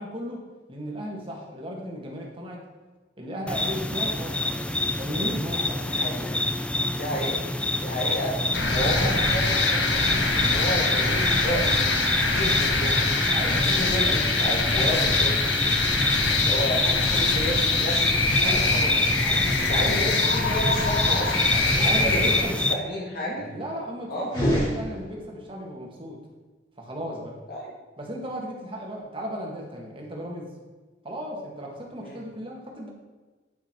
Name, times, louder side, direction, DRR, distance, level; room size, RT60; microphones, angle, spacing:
voice 1, 0.0-2.6 3.2-4.6 5.0-6.0 13.3-14.3 14.8-15.1 15.9-17.2 18.4-18.9 19.2-20.2 21.5-22.5 23.2-26.2 26.8-27.4 28.0-30.5 31.0-32.9, equal, 30° right, -1 dB, 1.8 m, -36 dB
sound 1, 3.5-22.7, left 2 dB, 5° left, 0.4 m, -27 dB
voice 2, 5.9-6.4 6.9-7.4 7.8-13.0 13.4-15.5 16.4-19.2 19.6-21.5 21.8-23.4 24.1-24.3 27.5-27.7 32.0-32.2, equal, 55° left, -4 dB, 2.1 m, -31 dB
sound 2, 8.5-22.4, left 3 dB, 70° left, 1.3 m, -24 dB
sound 3, 24.2-25.6, equal, 25° left, 3.0 m, -27 dB
10.0 x 5.7 x 4.5 m, 1.3 s
head